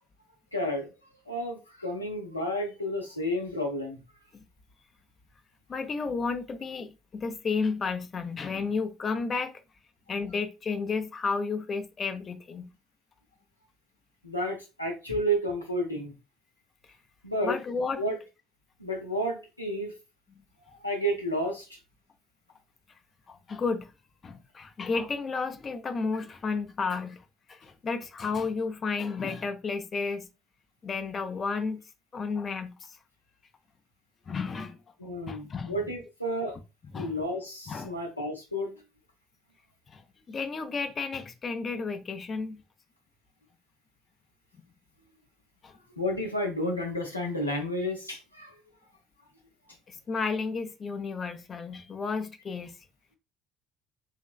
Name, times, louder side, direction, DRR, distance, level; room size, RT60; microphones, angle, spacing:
voice 1, 0.5-0.9 1.3-4.0 14.2-16.1 17.2-17.6 18.0-18.2 18.8-19.9 20.8-21.8 35.0-36.6 37.0-38.7 46.0-48.6, equal, 90° left, 0.6 m, -31 dB
voice 2, 5.7-9.6 10.1-12.7 17.4-18.0 20.3-20.4 23.3-23.9 24.2-30.3 30.8-31.8 32.1-33.0 34.3-34.8 35.3-35.7 36.9-37.2 37.7-37.9 39.9-42.6 45.6-45.7 49.9-52.8, left 4 dB, 35° left, 0.5 m, -32 dB
4.9 x 3.0 x 2.4 m
figure-of-eight pair, 55°, 0 cm